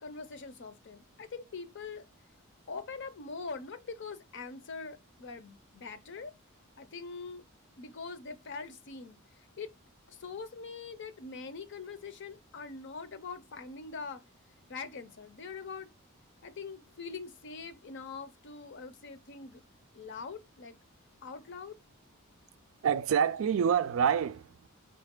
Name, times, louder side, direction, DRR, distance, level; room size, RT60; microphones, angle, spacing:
voice 1, 0.0-2.1 2.7-6.3 6.8-7.5 7.8-9.7 10.1-14.2 14.7-15.9 16.4-19.6 19.9-20.8 21.2-21.8, left 4 dB, 60° left, 0.6 m, -43 dB
voice 2, 22.8-24.7, right 7 dB, 70° right, 0.4 m, -27 dB
4.0 x 3.2 x 3.6 m
head